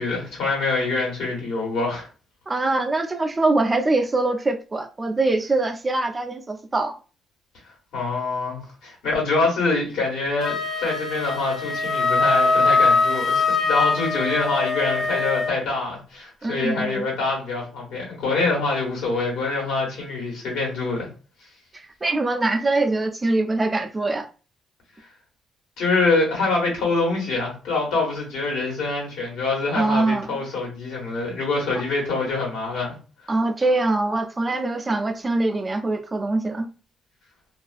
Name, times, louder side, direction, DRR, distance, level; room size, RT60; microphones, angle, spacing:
voice 1, 0.0-2.1 7.9-21.1 25.8-32.9, left 3 dB, 90° left, 1.2 m, -25 dB
voice 2, 2.5-7.0 16.4-17.1 21.7-24.3 29.8-30.3 33.3-36.6, right 2 dB, 25° right, 0.4 m, -23 dB
Wind instrument woodwind instrument, 10.4-15.6, left 3 dB, 35° left, 0.5 m, -22 dB
2.4 x 2.2 x 2.4 m
cardioid pair, 90°, 0 cm